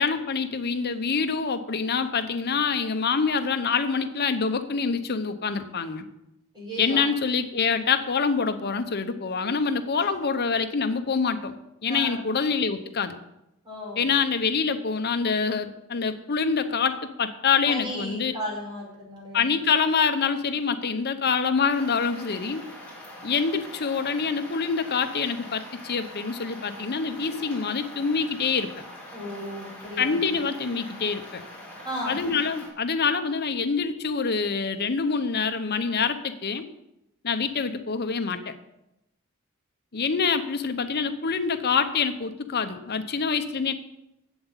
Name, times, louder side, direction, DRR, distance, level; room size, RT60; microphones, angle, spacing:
voice 1, 0.0-6.1 6.8-11.5 11.8-13.2 14.0-18.3 19.3-22.6 23.2-28.7 30.0-31.4 32.1-36.6 37.2-38.5 39.9-43.7, left 5 dB, 50° left, 9 dB, 0.9 m, -26 dB
voice 2, 6.5-7.0 11.9-12.2 13.6-14.0 17.6-19.5 29.1-30.2 31.8-32.2, equal, 20° right, -4 dB, 5.1 m, -35 dB
sound 1, 21.7-32.7, equal, 5° left, 4.4 m, -43 dB
8.0 x 7.7 x 8.2 m, 0.88 s
head